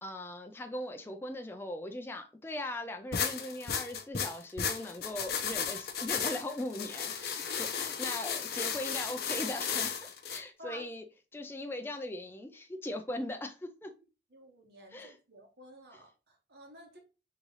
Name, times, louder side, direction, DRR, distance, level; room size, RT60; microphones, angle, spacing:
voice 1, 0.0-10.0 10.3-11.0 11.3-13.9 14.9-15.2, left 1 dB, 15° left, 0.4 m, -39 dB
sound 1, 3.1-10.4, left 7 dB, 60° left, 0.6 m, -34 dB
voice 2, 14.3-17.0, equal, 65° right, 1.2 m, -52 dB
3.7 x 3.2 x 3.9 m
head